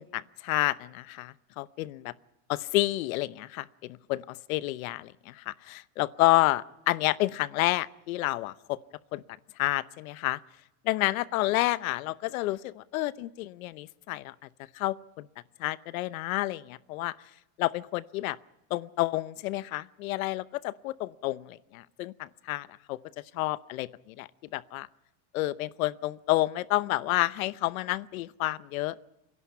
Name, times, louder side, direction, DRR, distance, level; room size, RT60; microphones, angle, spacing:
voice 1, 0.0-2.1 2.5-8.8 9.1-9.2 9.6-10.4 10.8-14.5 14.7-15.3 15.6-17.1 17.6-18.4 18.7-23.0 23.3-24.9 25.3-28.9, left 18 dB, 80° left, 17 dB, 0.9 m, -30 dB
29.5 x 11.0 x 10.0 m, 0.94 s
supercardioid pair, 160°, 41 cm